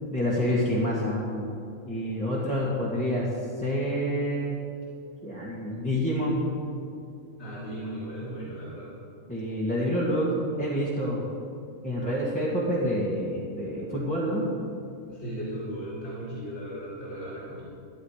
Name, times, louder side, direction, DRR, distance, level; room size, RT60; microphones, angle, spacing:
voice 1, 0.1-1.5 1.8-3.3 3.6-4.6 5.2-6.5 9.3-11.2 11.8-14.5, equal, 5° left, -8 dB, 1.8 m, -27 dB
voice 2, 7.4-8.9 15.1-17.6, right 1 dB, 60° left, -7 dB, 2.8 m, -36 dB
13.0 x 9.9 x 5.0 m, 2.5 s
omnidirectional pair, 1.3 m